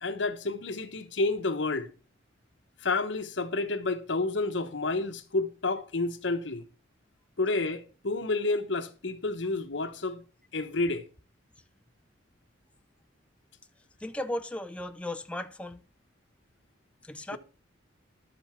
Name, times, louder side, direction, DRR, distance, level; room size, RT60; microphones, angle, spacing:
voice 1, 0.0-1.9 2.8-6.6 7.4-10.2 10.5-11.0 17.3-17.4, left 3 dB, 65° left, 1.1 m, -30 dB
voice 2, 14.0-15.8 17.0-17.4, left 1 dB, 5° left, 0.4 m, -36 dB
11.5 x 7.9 x 4.5 m
head